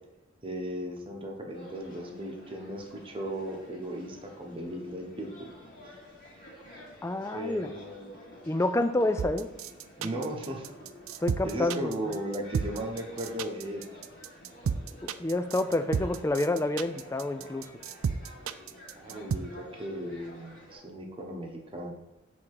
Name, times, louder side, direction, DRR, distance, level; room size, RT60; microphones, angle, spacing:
voice 1, 0.4-5.5 7.3-8.2 10.0-10.7 11.4-13.9 18.9-21.9, right 1 dB, 25° right, 1 dB, 1.1 m, -36 dB
sound 1, 1.5-20.8, equal, 45° left, 2.3 m, -51 dB
voice 2, 7.0-7.7 8.5-9.5 11.2-12.2 15.0-17.7, left 2 dB, 15° left, 10 dB, 0.3 m, -28 dB
sound 2, 9.2-19.4, right 6 dB, 90° right, 0.4 m, -32 dB
7.0 x 3.6 x 4.8 m, 0.97 s
head